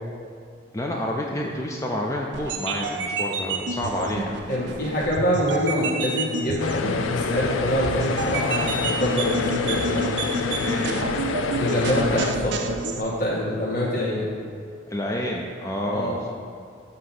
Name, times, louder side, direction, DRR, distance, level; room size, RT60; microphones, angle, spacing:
voice 1, 0.7-4.4 10.6-11.1 14.9-16.3, left 1 dB, 15° left, -1 dB, 0.3 m, -29 dB
sound 1, 2.3-13.0, right 3 dB, 65° right, 0.4 m, -30 dB
voice 2, 4.5-10.1 11.6-12.7 12.9-14.3 15.9-16.1, equal, 50° left, -6 dB, 1.6 m, -25 dB
sound 2, 6.6-12.3, left 5 dB, 85° left, 0.4 m, -27 dB
7.5 x 2.8 x 5.9 m, 2.3 s
head